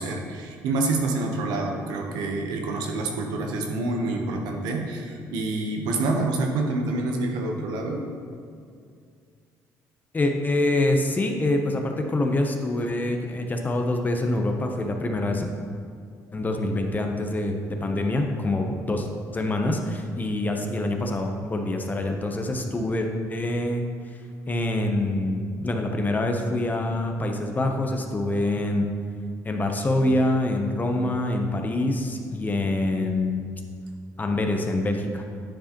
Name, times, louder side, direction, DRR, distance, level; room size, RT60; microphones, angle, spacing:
voice 1, 0.0-8.0, right 2 dB, 85° right, 2 dB, 0.9 m, -27 dB
voice 2, 10.1-15.4 16.3-17.5 17.8-19.1 19.3-23.8 24.5-28.9 29.4-33.5 34.2-35.2, left 2 dB, 25° left, 3 dB, 0.8 m, -25 dB
10.0 x 4.7 x 3.0 m, 2.3 s
cardioid pair, 90°, 7 cm